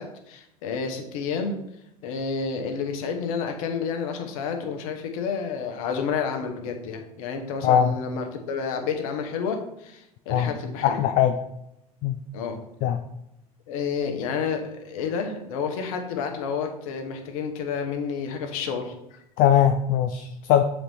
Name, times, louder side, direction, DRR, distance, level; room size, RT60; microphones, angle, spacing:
voice 1, 0.0-1.6 2.0-11.0 12.3-12.6 13.7-18.9, left 6 dB, 65° left, 5 dB, 1.1 m, -30 dB
voice 2, 7.6-8.0 10.3-10.5 10.8-11.4 12.0-12.2 12.8-13.0 19.4-20.6, left 9 dB, 50° left, 7 dB, 0.5 m, -20 dB
7.4 x 4.1 x 3.4 m, 0.84 s
figure-of-eight pair, 75°, 19 cm